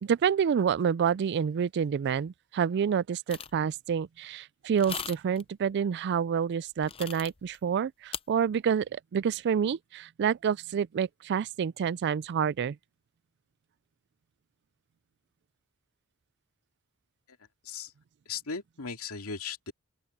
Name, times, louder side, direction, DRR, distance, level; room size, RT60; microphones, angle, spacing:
voice 1, 0.0-12.8, right 7 dB, 50° right, 0.3 m, -28 dB
sound 1, 3.3-3.6 4.8-5.4 6.8-7.6 8.1-8.2, left 7 dB, 25° left, 0.5 m, -38 dB
voice 2, 18.3-19.7, left 5 dB, 90° left, 2.3 m, -37 dB
open air
head